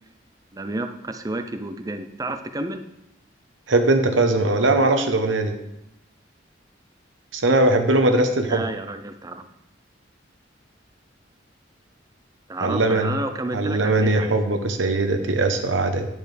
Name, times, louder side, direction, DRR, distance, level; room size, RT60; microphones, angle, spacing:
voice 1, 0.5-2.8 8.5-9.4 12.5-14.4, right 2 dB, 20° right, 8 dB, 0.5 m, -30 dB
voice 2, 3.7-5.6 7.3-8.6 12.6-13.1 13.5-16.1, right 2 dB, 85° right, 6 dB, 0.9 m, -20 dB
10.5 x 6.5 x 3.3 m, 0.87 s
head